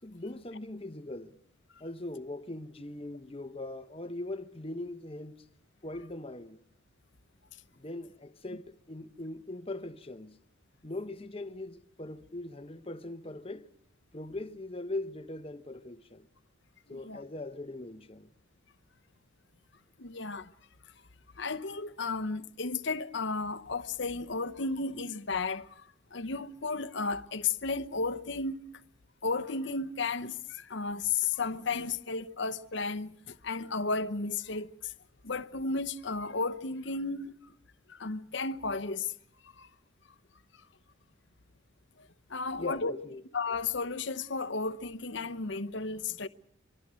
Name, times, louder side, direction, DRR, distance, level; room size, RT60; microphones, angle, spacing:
voice 1, 0.0-1.4 1.8-5.4 5.8-6.6 7.7-10.4 10.8-13.7 14.1-16.3 16.9-18.3 42.5-43.2, left 2 dB, 25° left, 1.0 m, -41 dB
voice 2, 16.9-17.2 20.0-20.5 21.4-28.6 29.2-34.9 35.2-37.3 37.9-39.1 39.6-39.7 42.3-42.9 43.3-46.3, left 4 dB, 60° left, 0.9 m, -33 dB
24.5 x 24.0 x 6.3 m
head